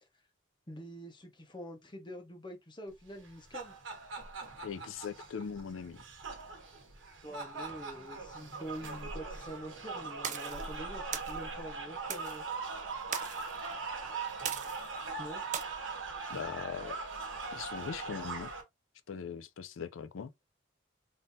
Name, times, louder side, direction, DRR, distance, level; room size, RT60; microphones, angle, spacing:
voice 1, 0.7-3.7 7.2-12.4 15.2-15.4, right 1 dB, 25° left, 0.8 m, -45 dB
sound 1, 3.2-18.6, right 4 dB, 75° right, 1.2 m, -41 dB
voice 2, 4.6-6.0 16.3-17.0 17.5-18.5 19.1-20.3, left 6 dB, 85° left, 0.4 m, -40 dB
sound 2, 10.2-10.6 11.1-11.4 12.1-12.4 13.1-13.5 14.4-14.9 15.5-15.6, right 8 dB, 40° right, 0.4 m, -38 dB
3.7 x 2.7 x 2.6 m
head